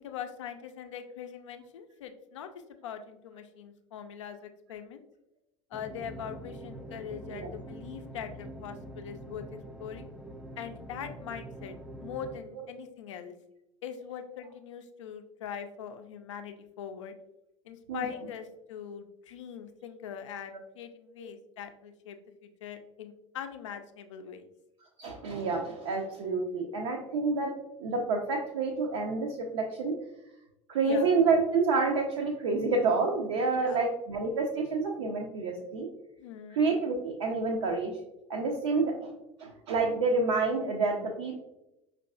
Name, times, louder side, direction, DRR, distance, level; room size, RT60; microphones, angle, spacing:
voice 1, 0.0-5.0 5.7-10.1 10.6-13.3 13.8-17.1 17.6-24.5 30.8-31.1 33.5-33.8 36.2-36.6, left 8 dB, 70° left, 8 dB, 0.4 m, -42 dB
sound 1, 5.7-12.4, right 1 dB, 5° right, 0.3 m, -45 dB
voice 2, 25.0-27.5 27.8-30.0 30.7-35.9 36.5-37.9 38.3-39.1 39.4-41.4, right 4 dB, 65° right, -1 dB, 0.5 m, -28 dB
5.2 x 2.4 x 2.3 m, 0.89 s
figure-of-eight pair, 70°, 16 cm